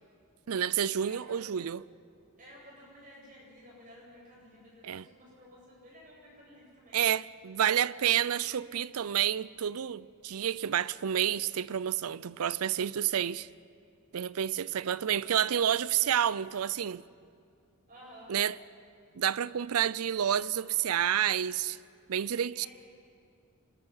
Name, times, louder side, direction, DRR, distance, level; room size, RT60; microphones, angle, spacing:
voice 1, 0.5-1.8 4.8-5.0 6.9-13.5 14.1-17.0 18.3-18.6 19.1-21.8 22.1-22.7, right 9 dB, 85° right, 0.5 m, -29 dB
voice 2, 1.0-1.4 2.4-7.0 17.9-18.3 22.5-22.7, equal, 40° right, 7.8 m, -53 dB
26.5 x 20.5 x 5.7 m
head